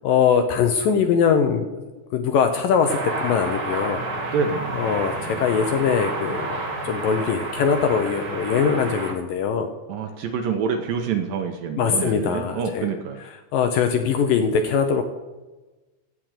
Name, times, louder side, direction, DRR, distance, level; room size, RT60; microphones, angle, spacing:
voice 1, 0.0-1.8 2.1-4.0 4.7-9.7 11.8-12.9 13.5-15.0, left 6 dB, 75° left, 6 dB, 2.1 m, -22 dB
sound 1, 2.8-9.1, right 2 dB, 60° right, 1.0 m, -30 dB
voice 2, 4.3-4.8 9.9-13.2, right 6 dB, 75° right, 5 dB, 2.2 m, -26 dB
16.5 x 6.0 x 6.6 m, 1.2 s
omnidirectional pair, 4.7 m